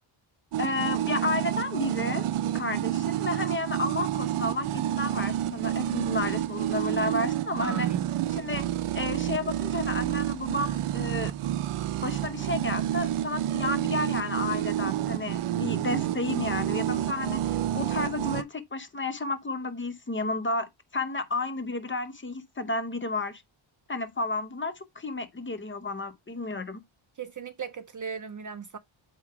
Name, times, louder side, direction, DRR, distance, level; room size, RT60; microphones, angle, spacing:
sound 1, 0.5-18.4, right 12 dB, 85° right, 0.6 m, -29 dB
voice 1, 0.6-2.3 2.5-7.9 8.3-8.7 8.9-11.3 12.0-23.4 23.9-26.8, left 2 dB, 25° left, 0.7 m, -32 dB
voice 2, 7.6-8.0 27.2-28.8, right 6 dB, 40° right, 0.5 m, -36 dB
8.0 x 3.0 x 4.6 m
wide cardioid pair, 165°, 49 cm